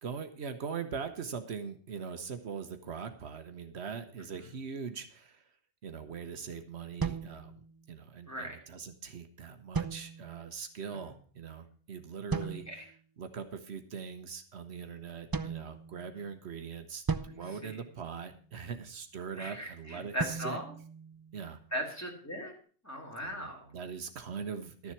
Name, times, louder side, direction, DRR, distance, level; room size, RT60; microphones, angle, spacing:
voice 1, 0.0-5.5 5.8-20.6 21.3-21.6 23.2-24.9, right 6 dB, 75° right, 8 dB, 1.2 m, -41 dB
sound 1, 7.0-8.1 9.7-10.5 12.3-13.0 15.3-16.4 17.1-18.5 20.2-21.7, right 4 dB, 30° right, 0.4 m, -38 dB
voice 2, 8.3-8.6 10.9-11.0 12.7-12.8 17.6-17.7 19.4-20.7 21.7-22.5 22.8-23.7, equal, 15° left, 0 dB, 2.8 m, -38 dB
12.0 x 7.2 x 5.9 m, 0.43 s
omnidirectional pair, 1.1 m